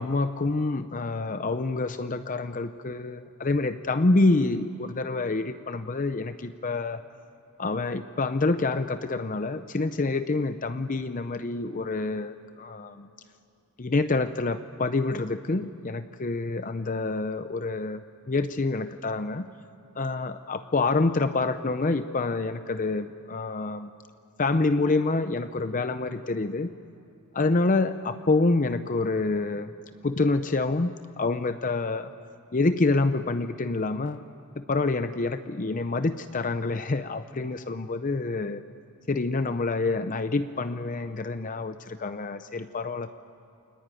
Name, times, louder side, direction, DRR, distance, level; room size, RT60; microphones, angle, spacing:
voice 1, 0.0-7.0 7.6-13.1 13.8-19.5 20.0-23.9 24.4-26.7 27.3-29.7 30.0-32.1 32.5-34.2 34.6-38.6 39.1-43.1, left 3 dB, 35° left, 10 dB, 0.6 m, -27 dB
29.0 x 21.5 x 9.1 m, 2.6 s
head